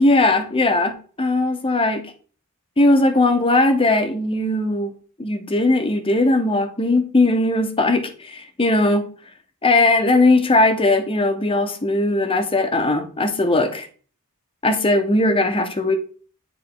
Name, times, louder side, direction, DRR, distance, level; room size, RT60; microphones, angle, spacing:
voice 1, 0.0-2.0 2.8-4.9 5.2-9.1 9.6-13.9 14.6-16.0, left 2 dB, 25° left, 8 dB, 0.8 m, -19 dB
9.6 x 3.4 x 3.8 m, 0.41 s
head